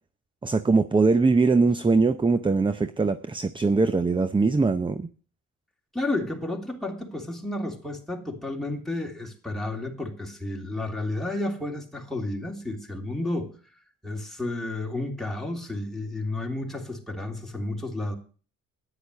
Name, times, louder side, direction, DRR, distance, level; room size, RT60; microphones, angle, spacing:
voice 1, 0.4-5.1, right 3 dB, 15° right, 0.7 m, -22 dB
voice 2, 5.9-13.5 14.0-18.2, left 2 dB, ahead, 3.2 m, -31 dB
10.0 x 10.0 x 6.6 m
cardioid pair, 90°, 30 cm